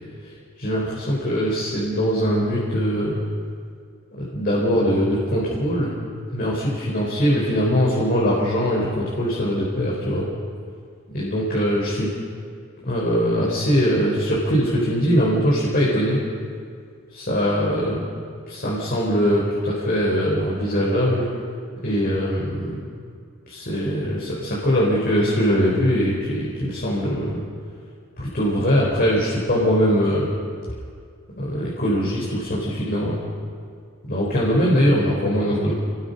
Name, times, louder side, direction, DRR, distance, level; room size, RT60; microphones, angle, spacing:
voice 1, 0.6-3.2 4.2-5.9 6.3-10.3 11.1-12.1 12.8-16.2 17.1-18.0 18.5-21.3 21.8-22.8 23.5-27.4 28.2-30.4 31.3-33.2 34.1-35.7, equal, 45° left, -4 dB, 4.1 m, -21 dB
28.0 x 20.0 x 5.4 m, 2.2 s
head